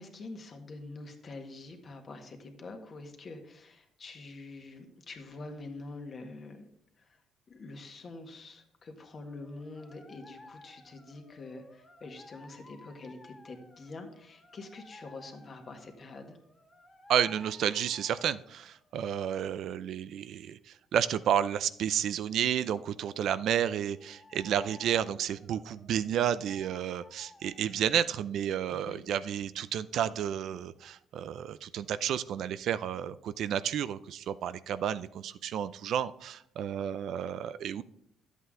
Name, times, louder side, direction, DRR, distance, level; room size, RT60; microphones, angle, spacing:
voice 1, 0.0-6.7 7.0-7.2 7.5-16.4 28.7-29.0, left 3 dB, 40° left, 4 dB, 1.7 m, -46 dB
sound 1, 9.2-19.1 24.0-28.3, left 2 dB, 15° left, 2.0 m, -56 dB
voice 2, 17.1-37.8, right 9 dB, 70° right, 15 dB, 0.4 m, -31 dB
11.0 x 8.2 x 3.8 m, 0.73 s
cardioid pair, 105°, 0 cm